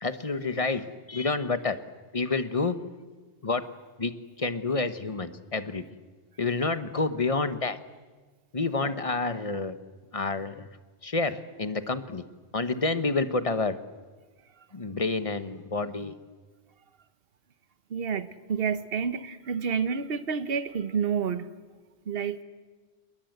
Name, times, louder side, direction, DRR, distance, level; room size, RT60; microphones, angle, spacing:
voice 1, 0.0-1.8 2.1-2.8 3.4-3.7 4.0-5.9 6.4-7.8 8.5-9.8 10.1-10.7 11.0-12.2 12.5-13.8 14.7-16.1, left 3 dB, 30° left, 11 dB, 1.0 m, -29 dB
voice 2, 17.9-21.5 22.1-22.4, right 6 dB, 55° right, 12 dB, 1.2 m, -29 dB
28.5 x 21.0 x 8.0 m, 1.4 s
omnidirectional pair, 1.2 m